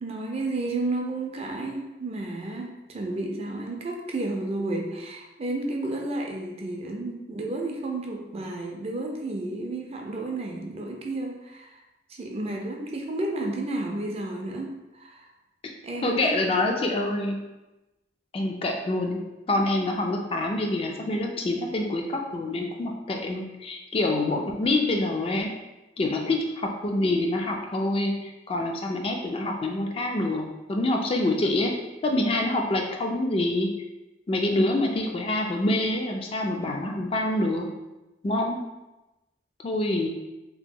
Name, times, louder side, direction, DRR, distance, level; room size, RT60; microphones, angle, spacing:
voice 1, 0.0-11.8 12.1-15.3 15.8-16.6, right 2 dB, 35° right, 1 dB, 0.4 m, -32 dB
voice 2, 16.0-17.4 18.3-19.2 19.5-25.5 26.0-31.7 32.0-33.7 34.3-37.7 38.2-38.6 39.6-40.1, left 2 dB, 30° left, 1 dB, 0.3 m, -26 dB
2.9 x 2.1 x 3.6 m, 1.0 s
head